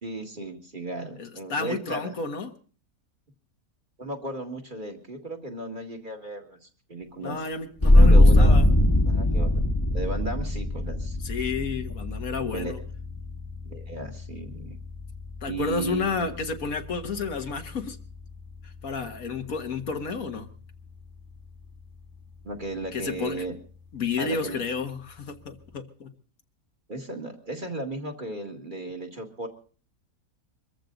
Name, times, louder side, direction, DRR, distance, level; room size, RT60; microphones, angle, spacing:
voice 1, 0.0-2.1 4.0-7.4 8.0-8.6 9.1-9.7 9.9-11.2 12.5-12.8 13.7-14.8 15.5-16.4 22.4-23.5 24.2-24.6 26.9-29.5, right 2 dB, 35° right, 2 dB, 2.2 m, -35 dB
voice 2, 1.2-2.5 7.2-8.7 11.2-12.8 15.4-18.0 18.6-20.5 22.9-23.5 23.9-26.1, left 4 dB, 70° left, 6 dB, 1.8 m, -31 dB
sound 1, 7.8-19.1, left 1 dB, 15° left, 1.4 m, -22 dB
23.5 x 14.5 x 3.9 m, 0.41 s
omnidirectional pair, 1.5 m